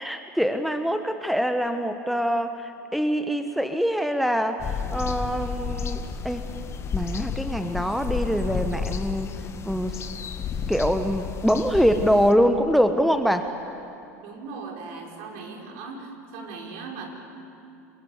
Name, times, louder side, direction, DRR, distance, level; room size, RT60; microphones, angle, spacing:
voice 1, 0.0-6.5 6.9-9.3 9.6-10.0 10.7-13.5, equal, ahead, 8 dB, 1.3 m, -24 dB
sound 1, 4.6-12.3, left 6 dB, 35° left, 1.7 m, -32 dB
voice 2, 14.2-17.1, right 4 dB, 60° right, 1 dB, 5.2 m, -38 dB
29.5 x 21.5 x 8.3 m, 2.7 s
hypercardioid pair, 85°, 8 cm